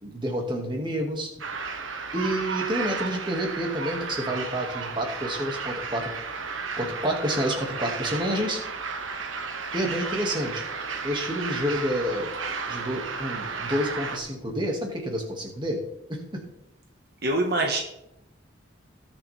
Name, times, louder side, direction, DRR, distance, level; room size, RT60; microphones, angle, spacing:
voice 1, 0.0-1.3 2.1-6.1 6.8-8.6 9.7-10.6 11.0-12.3 12.7-15.8 16.1-16.4, equal, 25° right, 1 dB, 2.1 m, -29 dB
sound 1, 1.4-14.2, right 5 dB, 80° right, 1.4 m, -33 dB
voice 2, 17.2-17.8, right 2 dB, 50° right, 2 dB, 1.5 m, -24 dB
19.5 x 7.1 x 3.5 m, 0.81 s
head